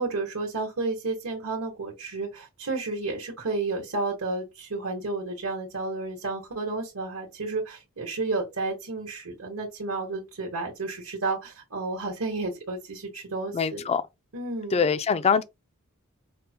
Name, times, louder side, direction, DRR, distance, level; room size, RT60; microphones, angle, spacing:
voice 1, 0.0-13.8 14.3-14.8, right 3 dB, 80° right, 1.1 m, -31 dB
voice 2, 13.5-14.0 14.7-15.4, left 6 dB, 30° left, 0.3 m, -23 dB
5.2 x 2.0 x 2.7 m
head